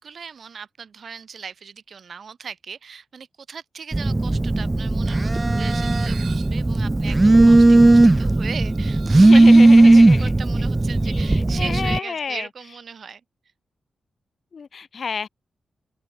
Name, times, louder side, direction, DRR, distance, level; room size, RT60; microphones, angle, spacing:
voice 1, 0.0-13.2, right 6 dB, 65° right, 4.4 m, -38 dB
Telephone, 3.9-12.0, right 2 dB, 20° right, 0.4 m, -15 dB
sound 1, 5.0-11.4, right 8 dB, 80° right, 5.5 m, -44 dB
voice 2, 9.2-10.3 11.0-12.5 14.5-15.3, left 5 dB, 60° left, 6.6 m, -30 dB
open air
cardioid pair, 70°, 0 cm